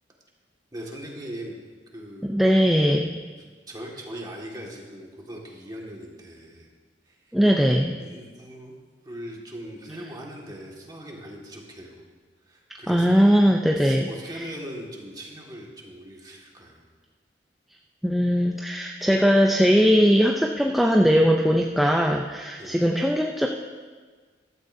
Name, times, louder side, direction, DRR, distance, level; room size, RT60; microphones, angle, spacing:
voice 1, 0.7-1.6 1.9-2.5 3.7-6.7 7.1-7.3 8.0-8.7 9.0-12.2 12.5-13.4 13.8-16.8 22.6-22.8, equal, 20° right, -2 dB, 1.8 m, -40 dB
voice 2, 2.2-3.1 7.3-8.0 12.9-14.4 18.0-23.5, equal, ahead, 1 dB, 0.5 m, -20 dB
14.5 x 12.5 x 2.7 m, 1.5 s
head